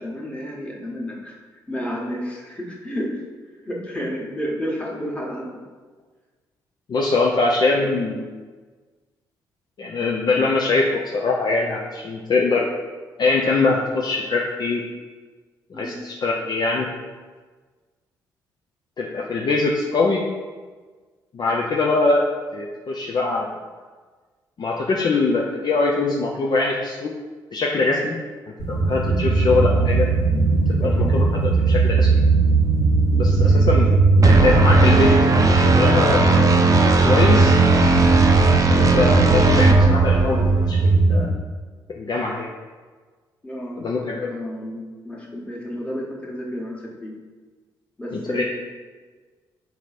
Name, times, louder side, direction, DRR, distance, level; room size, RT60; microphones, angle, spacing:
voice 1, 0.0-1.4 1.7-3.2 3.6-5.5 7.7-7.9 15.7-16.0 30.6-31.1 33.3-33.8 43.4-43.8 44.2-47.1 48.0-48.4, equal, 10° left, -3 dB, 1.4 m, -31 dB
voice 2, 6.9-8.2 9.8-10.9 11.1-12.7 13.2-14.8 15.8-16.9 19.0-20.2 21.3-22.2 22.5-23.5 24.6-27.1 27.5-28.2 28.7-30.1 30.7-32.2 33.1-33.9 34.2-35.2 35.5-36.2 36.8-37.5 38.7-41.3 41.9-42.5 43.8-44.3 48.1-48.4, left 3 dB, 40° left, -2 dB, 0.5 m, -22 dB
sound 1, 28.6-41.2, right 3 dB, 65° left, 1.2 m, -18 dB
sound 2, 34.2-40.7, right 3 dB, 30° right, 0.6 m, -18 dB
3.9 x 3.0 x 4.1 m, 1.4 s
figure-of-eight pair, 40°, 11 cm